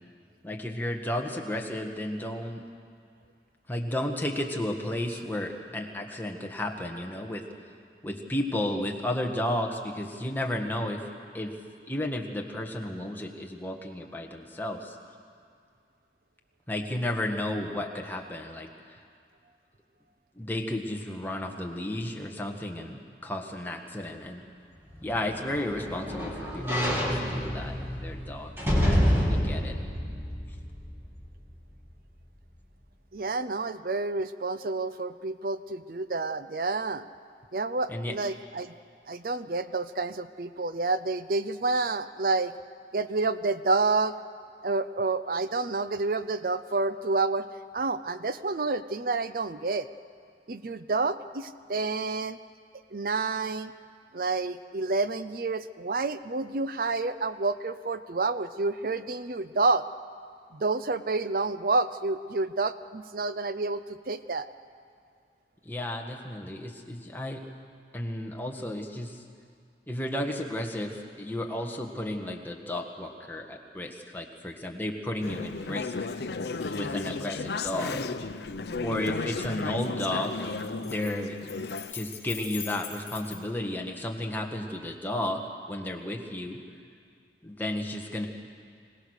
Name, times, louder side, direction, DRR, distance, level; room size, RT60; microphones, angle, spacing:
voice 1, 0.4-2.6 3.7-7.4 8.0-11.0 11.3-11.5 11.9-15.0 16.7-19.0 20.3-24.4 25.0-27.7 28.0-28.5 28.8-29.8 37.9-38.1 65.6-67.4 67.9-69.2 69.9-76.1 76.8-78.0 78.8-80.4 80.8-81.4 81.9-85.4 85.7-86.6 87.4-88.3, left 1 dB, 10° left, 1 dB, 1.6 m, -33 dB
sound 1, 24.9-31.3 31.7-31.8, equal, 15° right, 2.6 m, -28 dB
voice 2, 33.1-37.1 37.5-38.7 39.1-42.5 42.9-44.2 44.6-47.5 47.7-49.9 50.5-52.4 52.9-53.7 54.1-59.8 60.5-64.5, right 3 dB, 55° right, 13 dB, 0.6 m, -29 dB
Conversation / Chatter, 75.2-81.9, left 4 dB, 70° left, 0.6 m, -34 dB
sound 2, 76.6-77.2 77.7-79.6 80.4-83.4, left 5 dB, 45° left, 4.7 m, -42 dB
26.0 x 18.0 x 6.5 m, 2.2 s
head